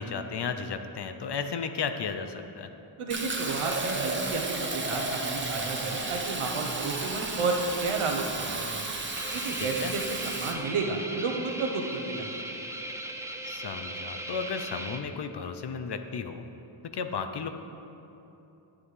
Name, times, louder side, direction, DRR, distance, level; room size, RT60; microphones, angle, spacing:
voice 1, 0.0-2.7 9.6-9.9 13.4-16.4 16.9-17.5, left 5 dB, 55° left, 8 dB, 0.6 m, -34 dB
voice 2, 3.0-8.9 9.3-12.5, right 3 dB, 85° right, 2 dB, 1.0 m, -32 dB
Fill (with liquid), 3.1-10.5, right 3 dB, 25° right, 0.8 m, -33 dB
sound 1, 9.1-15.0, right 1 dB, 5° right, 0.5 m, -38 dB
11.5 x 7.3 x 3.3 m, 3.0 s
wide cardioid pair, 90°, 49 cm